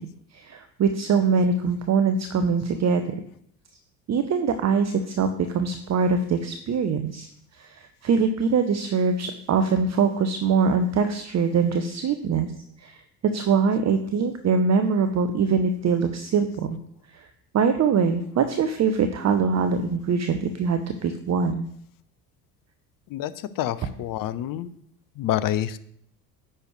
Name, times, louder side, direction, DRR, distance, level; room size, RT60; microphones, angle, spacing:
voice 1, 0.3-3.1 4.1-7.3 7.6-12.5 12.8-13.0 13.3-16.8 17.1-17.2 17.5-21.7, right 5 dB, 35° right, 8 dB, 0.9 m, -23 dB
voice 2, 23.1-24.7 25.2-25.8, left 12 dB, 45° left, 15 dB, 0.8 m, -27 dB
10.0 x 6.5 x 3.2 m, 0.67 s
hypercardioid pair, 65°, 47 cm